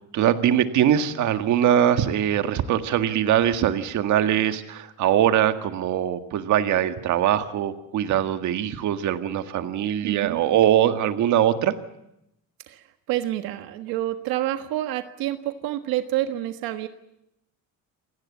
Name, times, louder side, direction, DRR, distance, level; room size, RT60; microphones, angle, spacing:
voice 1, 0.1-11.7, right 10 dB, 55° right, 8 dB, 1.8 m, -22 dB
voice 2, 10.0-10.4 12.7-16.9, right 14 dB, 80° right, 8 dB, 1.5 m, -28 dB
27.5 x 18.0 x 8.5 m, 0.83 s
cardioid pair, 155°, 35 cm